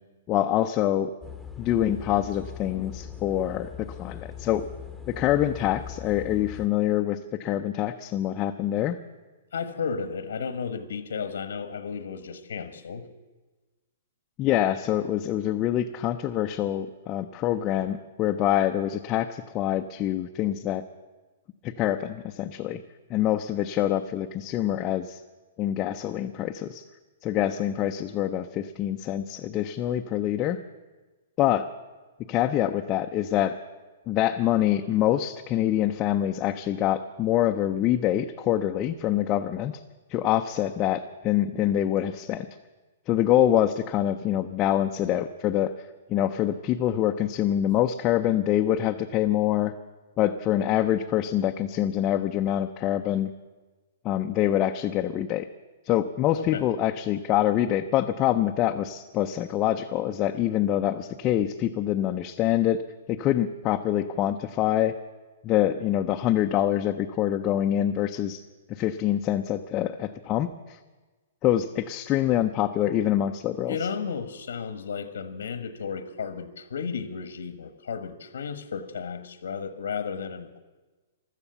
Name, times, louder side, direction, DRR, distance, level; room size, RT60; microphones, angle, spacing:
voice 1, 0.3-1.1 1.6-4.7 5.1-9.0 14.4-20.8 21.6-22.8 23.1-25.2 25.6-26.8 27.2-30.6 31.4-31.7 32.3-33.6 34.1-39.8 40.1-42.5 43.1-45.7 46.1-49.7 50.2-53.3 54.0-55.5 55.9-62.8 63.1-64.9 65.4-68.4 68.7-70.8 71.4-73.8, left 12 dB, 25° left, 4 dB, 0.5 m, -25 dB
sound 1, 1.2-6.7, left 8 dB, 5° left, 0.9 m, -40 dB
voice 2, 9.5-13.1 56.4-56.7 73.7-80.6, left 6 dB, 90° left, 11 dB, 1.3 m, -33 dB
15.5 x 12.5 x 6.9 m, 1.2 s
hypercardioid pair, 160°, 0 cm